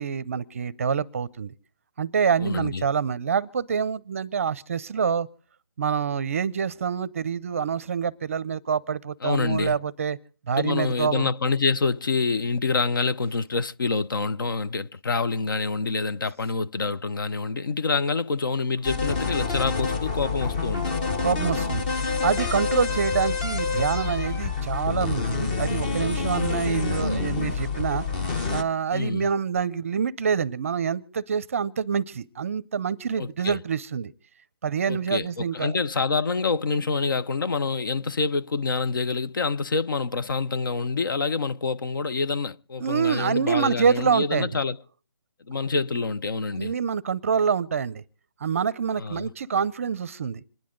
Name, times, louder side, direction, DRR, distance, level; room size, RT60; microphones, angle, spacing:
voice 1, 0.0-1.5 2.0-5.3 5.8-10.2 10.5-11.3 21.2-21.9 22.2-28.1 28.5-34.1 34.6-35.8 42.8-44.5 46.5-48.0 48.4-50.4, right 6 dB, 35° right, 0.6 m, -26 dB
voice 2, 2.4-2.8 9.2-9.8 10.5-21.0 28.9-29.3 33.2-33.6 34.9-44.8 45.5-46.8 49.0-49.3, left 4 dB, 60° left, 0.7 m, -26 dB
sound 1, 18.8-28.6, left 4 dB, 20° left, 0.8 m, -27 dB
26.5 x 10.5 x 3.8 m
hypercardioid pair, 165°, 13 cm